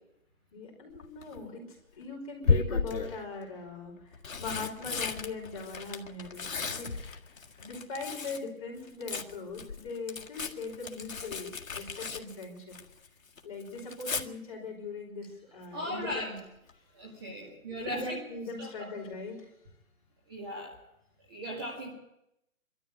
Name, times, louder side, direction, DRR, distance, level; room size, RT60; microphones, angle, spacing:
voice 1, 0.5-6.9 7.6-12.8 13.4-16.4 17.0-19.5, left 3 dB, 25° left, -3 dB, 5.3 m, -41 dB
Tearing, 0.9-1.4 2.4-3.2 4.0-8.5 8.8-13.1 13.4-14.2 16.1-16.4 16.7-16.8, left 4 dB, 75° left, 1.9 m, -34 dB
sound 1, 2.9-3.8 4.1-4.2 6.8-8.1, left 4 dB, 40° left, 1.2 m, -46 dB
voice 2, 15.7-16.3 16.9-18.2 18.6-18.9 20.3-20.8 21.3-21.9, equal, 15° right, -2 dB, 2.1 m, -37 dB
23.5 x 13.0 x 9.8 m, 0.83 s
hypercardioid pair, 175°, 41 cm